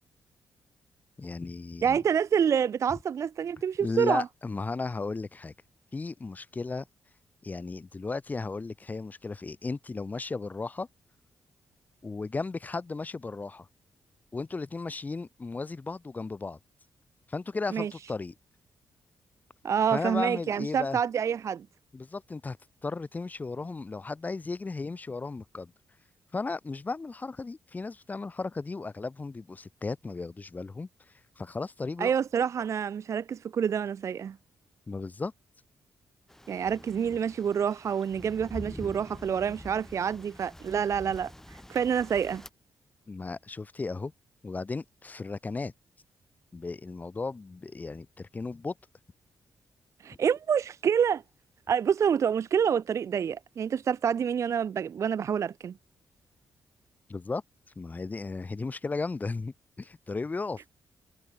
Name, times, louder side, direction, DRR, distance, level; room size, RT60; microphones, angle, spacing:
voice 1, 1.2-2.0 3.8-5.5 5.9-6.8 7.4-10.9 12.0-13.7 14.3-16.6 17.3-18.3 19.9-21.0 21.9-22.6 22.8-25.7 26.3-30.9 31.4-32.1 34.9-35.3 43.1-44.1 44.4-45.7 46.5-48.7 57.1-57.4 57.8-60.6, left 3 dB, 25° left, 1.3 m, -35 dB
voice 2, 1.8-4.2 17.7-17.9 19.6-21.7 32.0-34.4 36.5-42.4 50.0-51.2 51.7-55.7, right 7 dB, 50° right, 0.4 m, -27 dB
sound 1, 36.3-42.5, left 1 dB, 5° left, 2.8 m, -46 dB
cardioid pair, 105°, 6 cm